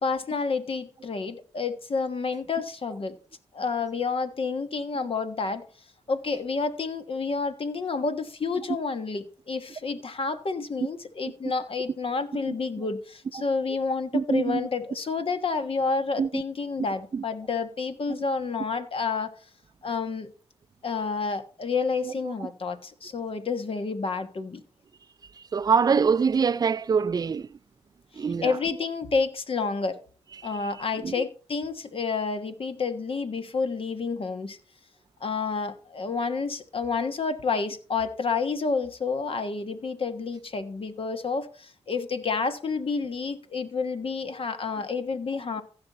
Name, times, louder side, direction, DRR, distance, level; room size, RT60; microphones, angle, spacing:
voice 1, 0.0-3.2 3.5-5.7 6.1-19.3 19.8-20.3 20.8-24.6 28.1-30.0 30.4-34.6 35.2-45.6, left 4 dB, 50° left, 1.4 m, -29 dB
voice 2, 12.5-12.9 13.3-13.4 14.1-14.7 16.2-16.4 17.1-17.2 22.0-22.5 25.3-27.6 28.1-28.6 30.4-30.7 31.0-31.2, right 6 dB, 35° right, 0.4 m, -25 dB
15.0 x 5.9 x 4.0 m
cardioid pair, 55°, 12 cm